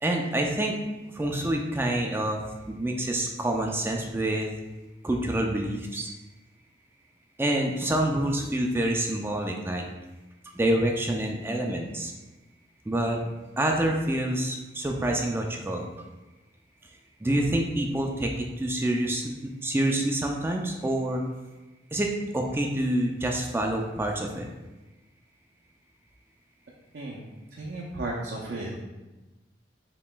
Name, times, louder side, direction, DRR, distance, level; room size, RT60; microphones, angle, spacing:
voice 1, 0.0-0.8 1.1-2.4 2.7-4.5 5.0-6.1 7.4-9.9 10.5-12.1 12.9-13.2 13.6-15.9 17.2-21.2 21.9-24.5, right 1 dB, 15° right, 1 dB, 0.4 m, -27 dB
voice 2, 26.9-27.3 27.6-28.8, right 2 dB, 65° right, -3 dB, 0.6 m, -34 dB
7.0 x 3.0 x 2.2 m, 1.1 s
head